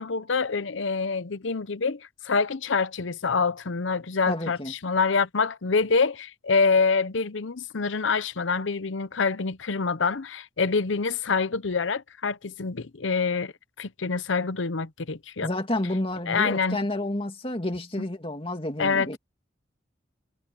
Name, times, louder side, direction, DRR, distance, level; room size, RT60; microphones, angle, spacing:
voice 1, 0.0-13.5 13.8-15.5 16.3-16.8 18.8-19.1, left 4 dB, 75° left, 0.8 m, -26 dB
voice 2, 4.3-4.7 15.4-19.2, left 1 dB, 30° left, 2.3 m, -30 dB
head